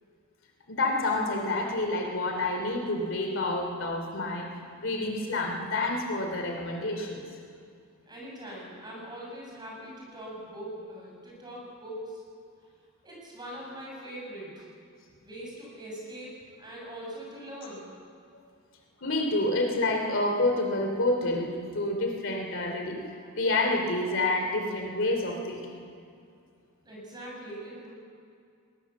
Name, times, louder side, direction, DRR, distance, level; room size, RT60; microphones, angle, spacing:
voice 1, 0.7-7.2 19.0-25.8, left 2 dB, 60° left, 2 dB, 2.9 m, -28 dB
voice 2, 8.1-12.2 13.0-14.6 15.2-17.9 26.8-27.9, right 1 dB, 20° right, -3 dB, 6.9 m, -42 dB
21.0 x 19.5 x 7.2 m, 2.3 s
head